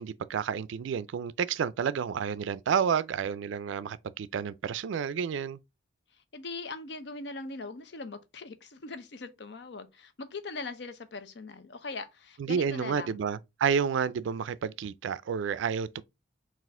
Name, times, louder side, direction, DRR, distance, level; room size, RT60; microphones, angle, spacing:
voice 1, 0.0-5.6 12.4-16.0, right 7 dB, 80° right, 0.3 m, -30 dB
voice 2, 6.1-13.2, left 3 dB, 65° left, 0.6 m, -41 dB
4.1 x 2.5 x 3.5 m
head